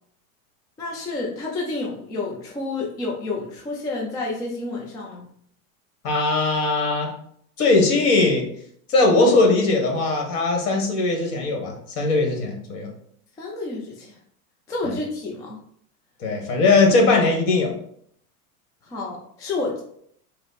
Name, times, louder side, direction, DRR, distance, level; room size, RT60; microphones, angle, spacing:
voice 1, 0.8-5.3 13.4-14.2 14.7-15.6 18.8-19.8, left 3 dB, 10° left, -2 dB, 0.3 m, -30 dB
voice 2, 6.0-7.1 7.6-8.4 8.9-12.9 14.8-14.9 16.2-17.7, left 3 dB, 55° left, 1 dB, 1.5 m, -19 dB
4.7 x 2.1 x 4.1 m, 0.66 s
hypercardioid pair, 115°, 44 cm